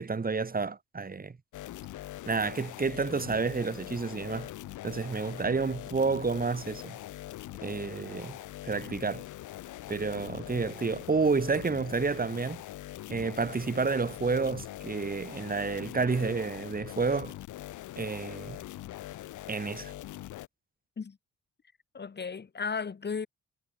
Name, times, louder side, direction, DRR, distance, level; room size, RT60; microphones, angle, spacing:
voice 1, 0.0-1.3 2.3-4.5 4.8-7.0 7.6-8.4 8.6-9.2 9.9-12.6 13.1-17.3 18.0-18.6 19.5-19.9, right 4 dB, 30° right, 4.9 m, -30 dB
sound 1, 1.5-20.5, left 14 dB, 80° left, 1.8 m, -43 dB
voice 2, 21.9-23.3, left 5 dB, 35° left, 2.5 m, -35 dB
cardioid pair, 90°, 30 cm